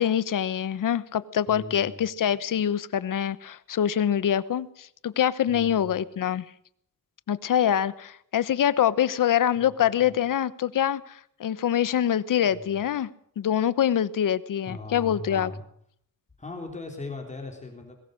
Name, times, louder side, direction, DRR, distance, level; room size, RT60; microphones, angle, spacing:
voice 1, 0.0-6.4 7.3-13.1 13.4-15.5, left 10 dB, 75° left, 16 dB, 1.1 m, -25 dB
voice 2, 1.5-2.0 5.5-6.0 9.6-10.1 12.5-12.8 14.6-15.6 16.4-18.0, left 2 dB, 20° left, 2 dB, 3.5 m, -39 dB
22.0 x 20.5 x 6.5 m, 0.66 s
wide cardioid pair, 170°, 32 cm